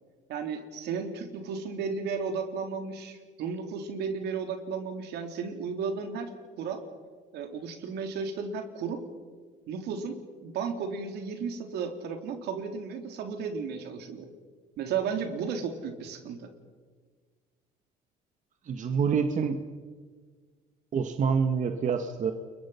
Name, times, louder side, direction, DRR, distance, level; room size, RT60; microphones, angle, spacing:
voice 1, 0.3-6.3 6.6-6.8 7.3-9.0 9.7-14.3 14.8-16.5, right 5 dB, 75° right, 5 dB, 3.4 m, -34 dB
voice 2, 18.7-19.6 20.9-22.3, right 6 dB, 45° right, 7 dB, 1.5 m, -26 dB
30.0 x 22.5 x 5.8 m, 1.5 s
cardioid pair, 110°, 17 cm